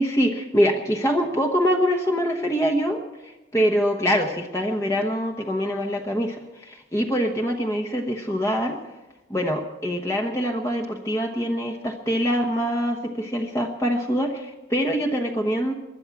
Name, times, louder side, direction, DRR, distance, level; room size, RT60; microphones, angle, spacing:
voice 1, 0.0-8.8 9.3-15.7, equal, 15° left, 2 dB, 1.1 m, -24 dB
20.5 x 11.5 x 6.0 m, 1.0 s
head